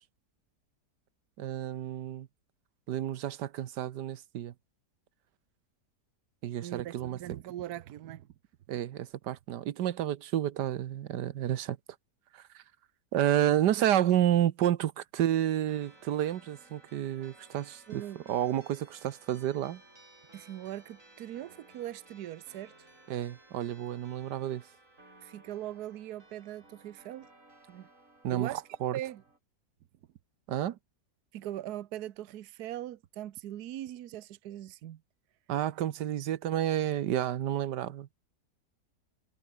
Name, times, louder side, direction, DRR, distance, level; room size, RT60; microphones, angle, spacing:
voice 1, 1.4-2.3 2.9-4.5 6.4-7.2 8.7-11.8 12.3-12.6 13.1-17.8 18.3-19.8 23.1-24.6 28.2-29.0 30.5-30.8 35.5-38.1, right 11 dB, 90° right, 1.5 m, -30 dB
voice 2, 6.6-8.3 17.9-18.2 20.3-22.7 25.2-27.3 27.7-27.9 28.3-28.6 28.9-29.2 31.3-35.0, right 13 dB, 70° right, 1.3 m, -40 dB
sound 1, 15.7-29.4, right 2 dB, 50° right, 6.8 m, -58 dB
omnidirectional pair, 1.8 m